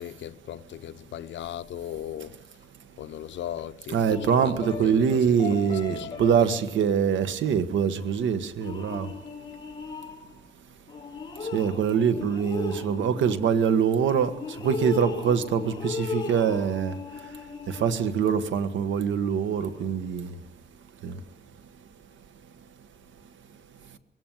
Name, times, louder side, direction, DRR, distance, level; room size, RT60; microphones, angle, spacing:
voice 1, 0.0-2.5 3.0-6.2 12.1-12.3, left 11 dB, 80° left, 0.8 m, -38 dB
voice 2, 3.9-9.1 11.5-17.0 17.7-20.4 21.0-21.2, right 7 dB, 85° right, 1.6 m, -24 dB
sound 1, 4.1-6.7 8.0-8.2 8.6-10.4 10.9-18.2 19.7-19.9, left 4 dB, 25° left, 2.7 m, -37 dB
21.5 x 17.0 x 9.2 m
cardioid pair, 125°, 19 cm